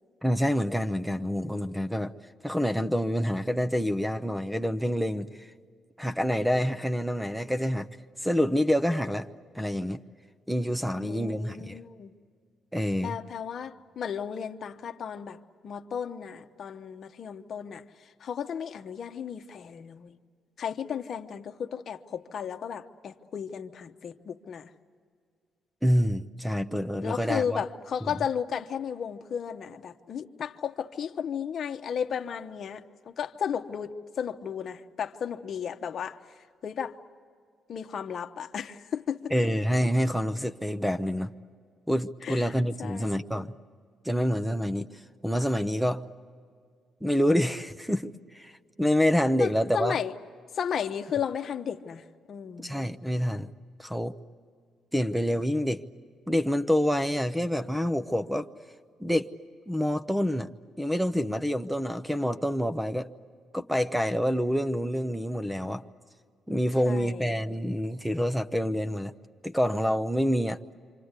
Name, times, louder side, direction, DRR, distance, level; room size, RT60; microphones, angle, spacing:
voice 1, 0.2-2.1 2.4-5.5 6.0-7.9 8.2-9.3 9.5-10.0 10.5-11.8 12.7-13.2 25.8-27.6 39.3-41.3 41.9-43.5 44.0-44.9 45.2-46.0 47.0-48.5 48.8-50.0 52.6-53.5 53.8-54.1 54.9-55.8 56.3-58.5 59.0-59.3 59.7-60.5 60.8-63.1 63.5-65.8 66.5-69.1 69.4-70.7, equal, 5° right, 0.8 m, -27 dB
voice 2, 10.9-12.2 13.0-17.8 18.2-20.2 20.6-24.7 27.0-36.2 36.6-37.0 37.7-39.3 42.2-42.5 42.8-43.2 49.4-50.1 50.5-52.8 66.9-67.4, left 7 dB, 55° left, 1.0 m, -34 dB
27.5 x 26.0 x 8.2 m
cardioid pair, 90°, 0 cm